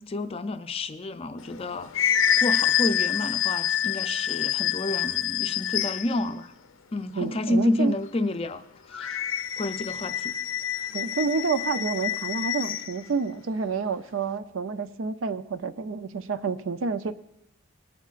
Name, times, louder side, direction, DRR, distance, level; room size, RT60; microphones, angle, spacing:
voice 1, 0.0-6.5 6.9-9.2 9.6-10.3, left 1 dB, 30° left, 9 dB, 0.4 m, -30 dB
sound 1, 1.4-6.2 8.9-12.9, left 10 dB, 75° left, 0.6 m, -27 dB
voice 2, 7.2-7.9 10.9-17.1, right 4 dB, 75° right, 11 dB, 0.5 m, -29 dB
20.0 x 11.0 x 2.5 m, 0.83 s
head